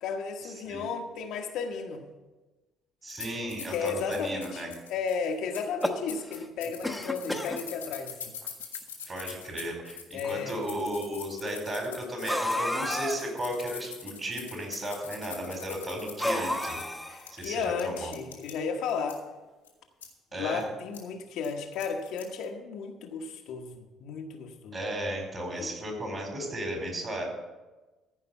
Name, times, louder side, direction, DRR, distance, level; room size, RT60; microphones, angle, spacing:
voice 1, 0.0-2.0 3.7-8.4 10.1-10.6 17.1-19.2 20.3-24.8 25.6-25.7, left 5 dB, 60° left, 3 dB, 1.1 m, -34 dB
voice 2, 3.0-4.7 9.1-16.8 17.3-18.1 20.3-20.7 24.7-27.2, equal, 30° right, 1 dB, 4.6 m, -34 dB
sound 1, 3.1-18.6 18.9-19.2 19.6-19.7 20.0-20.1 20.6-20.7 20.9-21.0 21.4-22.4, left 7 dB, 85° left, 1.5 m, -43 dB
sound 2, 5.6-6.4 6.8-7.6 8.4-8.5 8.7-8.8 9.8-9.9 12.3-13.3 16.2-17.3, left 1 dB, ahead, 1.3 m, -31 dB
15.0 x 5.3 x 8.1 m, 1.2 s
figure-of-eight pair, 50°, 0 cm